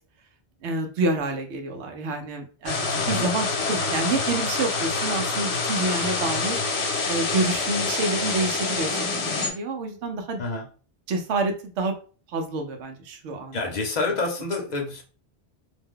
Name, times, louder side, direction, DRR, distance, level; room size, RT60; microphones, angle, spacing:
voice 1, 0.6-6.6 7.1-10.4 11.1-11.9 12.3-13.6, right 3 dB, 85° right, 4 dB, 0.9 m, -28 dB
sound 1, 2.7-9.5, left 3 dB, 75° left, 1.0 m, -26 dB
voice 2, 13.5-15.0, left 3 dB, 45° left, 2 dB, 0.8 m, -28 dB
2.6 x 2.2 x 3.6 m, 0.39 s
omnidirectional pair, 1.1 m